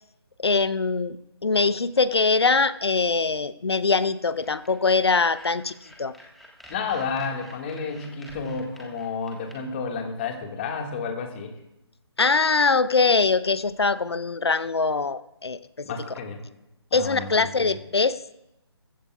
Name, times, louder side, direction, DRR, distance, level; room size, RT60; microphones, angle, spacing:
voice 1, 0.4-1.2 1.4-5.7 6.0-6.1 12.2-15.9 16.9-18.2, left 4 dB, 70° left, 14 dB, 0.8 m, -22 dB
sound 1, 4.3-9.6, equal, ahead, 1.5 m, -49 dB
voice 2, 6.7-11.5 15.8-16.4 16.9-17.8, left 5 dB, 25° left, 3 dB, 1.9 m, -31 dB
22.5 x 15.0 x 2.4 m, 0.88 s
figure-of-eight pair, 145°, 14 cm